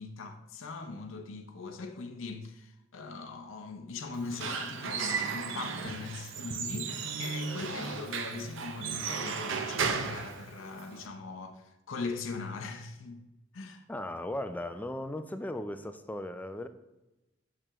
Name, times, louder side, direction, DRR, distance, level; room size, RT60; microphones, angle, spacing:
voice 1, 0.0-13.2 13.5-13.8, left 4 dB, 80° left, 0.6 m, -40 dB
Squeak / Wood, 4.1-11.0, right 5 dB, 70° right, 0.6 m, -35 dB
voice 2, 13.9-16.7, left 1 dB, 10° left, 0.3 m, -37 dB
6.7 x 6.1 x 3.0 m
head